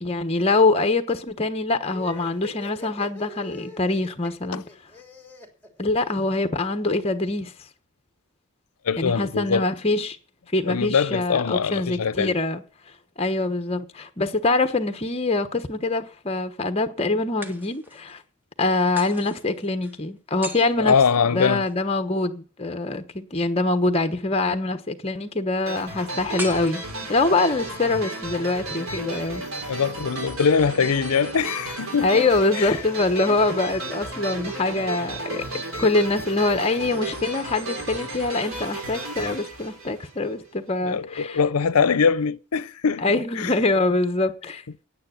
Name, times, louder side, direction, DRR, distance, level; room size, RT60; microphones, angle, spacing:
voice 1, 0.0-4.6 5.8-7.5 9.0-10.2 10.5-12.6 13.2-18.2 18.6-20.9 21.3-26.8 27.1-29.4 32.0-35.4 35.8-41.4 43.0-44.6, left 2 dB, 25° left, 1.1 m, -24 dB
sound 1, 1.8-6.5, left 2 dB, 5° left, 3.0 m, -42 dB
voice 2, 8.8-9.7 10.7-12.4 20.8-21.6 29.7-32.3 32.6-32.8 40.8-43.5, left 6 dB, 85° left, 0.6 m, -22 dB
sound 2, 14.6-15.4 17.4-18.2 19.0-21.8 26.4-27.5, equal, 10° right, 1.1 m, -40 dB
sound 3, 25.7-40.5, right 2 dB, 65° right, 3.2 m, -34 dB
9.6 x 9.1 x 9.2 m
head